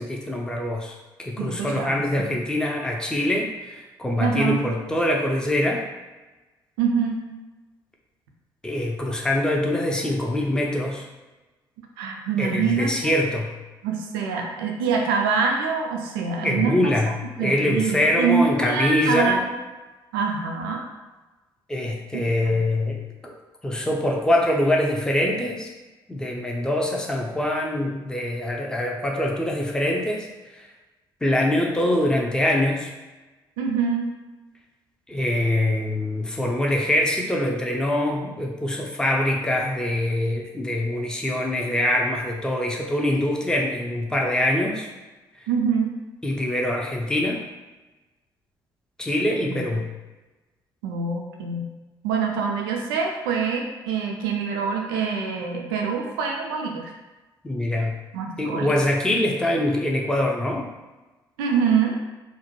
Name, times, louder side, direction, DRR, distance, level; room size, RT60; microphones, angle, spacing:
voice 1, 0.0-5.9 8.6-11.1 12.4-13.5 16.4-19.4 21.7-23.3 23.6-25.7 26.1-30.7 31.2-32.9 35.1-44.9 46.2-47.4 49.0-49.9 57.4-58.0 58.4-60.7, left 1 dB, 5° left, -1 dB, 0.5 m, -24 dB
voice 2, 1.4-2.4 4.2-4.7 6.8-7.3 12.0-13.1 13.8-16.9 17.4-19.5 20.1-20.8 22.1-22.6 33.6-34.1 45.5-45.9 49.5-49.6 50.8-51.7 52.0-56.9 58.1-58.8 61.4-61.9, right 5 dB, 75° right, 1 dB, 0.4 m, -25 dB
2.5 x 2.1 x 2.9 m, 1.2 s
figure-of-eight pair, 45°, 12 cm